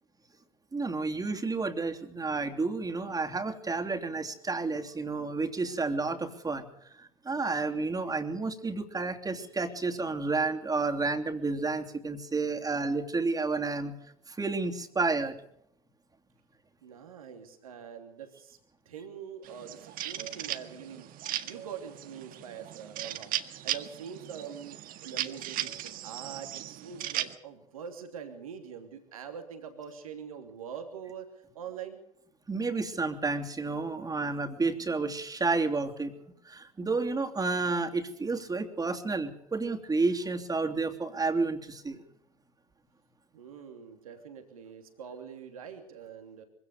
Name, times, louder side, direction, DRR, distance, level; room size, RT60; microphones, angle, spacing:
voice 1, 0.7-6.7 7.0-13.9 14.3-15.4 32.5-36.1 36.4-42.0, right 3 dB, 20° right, 5 dB, 3.1 m, -31 dB
voice 2, 16.8-18.6 18.8-32.1 43.3-46.4, right 7 dB, 80° right, 5 dB, 3.0 m, -44 dB
sound 1, 19.4-27.4, right 13 dB, 55° right, 1.7 m, -37 dB
24.5 x 17.0 x 6.7 m, 0.75 s
hypercardioid pair, 65°, 18 cm